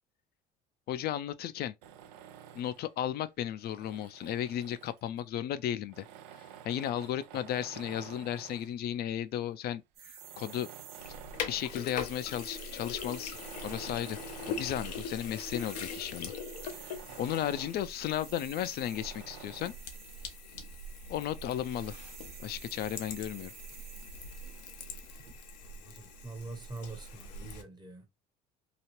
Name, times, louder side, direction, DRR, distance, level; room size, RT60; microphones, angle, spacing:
voice 1, 0.9-1.7 2.5-6.1 6.4-10.7 11.1-11.2 11.5-13.3 13.6-14.2 14.5-16.3 16.7-19.7 21.1-22.0 22.4-23.5, left 11 dB, 50° left, 0.4 m, -35 dB
Tools, 1.8-2.9 3.6-5.2 5.9-8.8 9.5-9.6 10.1-11.9 12.3-12.4 13.2-15.7 16.1-16.2 16.5-17.9 18.9-19.9, right 10 dB, 85° right, 0.5 m, -50 dB
sound 1, 9.9-25.3, right 9 dB, 50° right, 0.7 m, -52 dB
Sink (filling or washing), 11.0-27.6, left 4 dB, 90° left, 0.7 m, -42 dB
voice 2, 25.6-28.0, right 3 dB, 20° right, 0.9 m, -45 dB
2.9 x 2.4 x 3.0 m
hypercardioid pair, 80°, 20 cm